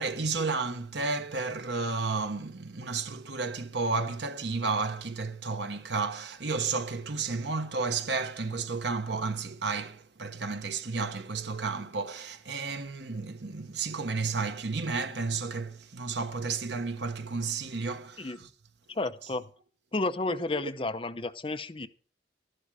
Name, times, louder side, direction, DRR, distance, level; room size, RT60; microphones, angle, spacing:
voice 1, 0.0-18.5 20.3-20.4, right 4 dB, 70° right, 1.1 m, -32 dB
voice 2, 18.9-19.5 19.9-21.9, left 2 dB, 30° left, 0.7 m, -32 dB
12.5 x 11.0 x 4.8 m
head